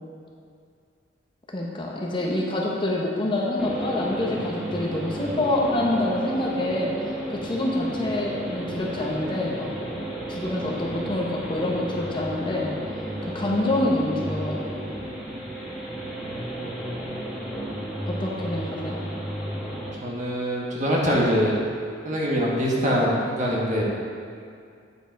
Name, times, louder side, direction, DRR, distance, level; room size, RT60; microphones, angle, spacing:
voice 1, 1.5-6.9 7.3-9.7 10.3-12.7 13.2-14.6 18.1-19.0, left 1 dB, 25° left, -2 dB, 0.8 m, -26 dB
sound 1, 3.6-19.9, right 1 dB, 5° right, 1.2 m, -33 dB
voice 2, 20.0-21.6 22.0-23.8, equal, 40° right, -3 dB, 1.2 m, -23 dB
8.3 x 5.0 x 4.5 m, 2.3 s
head